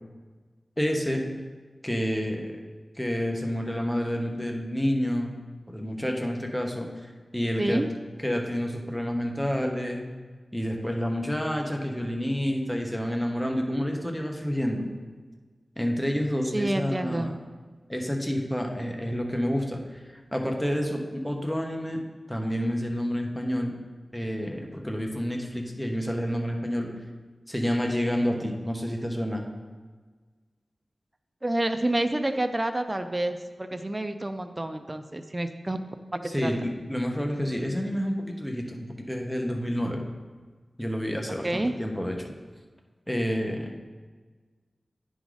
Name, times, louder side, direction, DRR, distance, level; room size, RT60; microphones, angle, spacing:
voice 1, 0.8-1.2 1.8-2.6 2.9-5.3 5.7-7.8 8.2-10.1 10.5-14.9 15.8-17.3 17.9-20.0 20.3-22.0 22.3-23.8 24.1-26.9 27.5-29.4 36.2-40.0 40.8-42.3 43.1-43.7, equal, 5° left, 1 dB, 1.0 m, -29 dB
voice 2, 7.6-7.9 16.5-17.3 31.4-35.8 36.1-36.5 41.4-41.7, right 1 dB, 25° right, 7 dB, 0.4 m, -28 dB
9.7 x 3.9 x 4.8 m, 1.4 s
wide cardioid pair, 80°, 0 cm